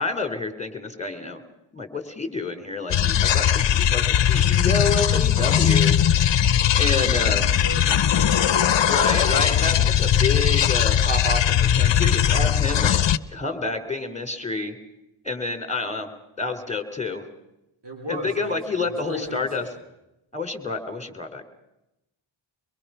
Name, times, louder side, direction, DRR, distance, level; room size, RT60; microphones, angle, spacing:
voice 1, 0.0-1.4 1.7-5.9 6.7-7.4 8.8-13.0 13.3-14.7 15.2-16.1 16.4-17.2 18.1-19.6 20.3-21.4, left 3 dB, 15° left, 8 dB, 3.3 m, -28 dB
sound 1, 2.9-13.2, left 9 dB, 60° left, 0.7 m, -19 dB
voice 2, 6.9-8.9 17.8-19.8, right 1 dB, 55° right, 1 dB, 3.4 m, -38 dB
24.5 x 22.5 x 5.6 m, 0.89 s
wide cardioid pair, 55°, 49 cm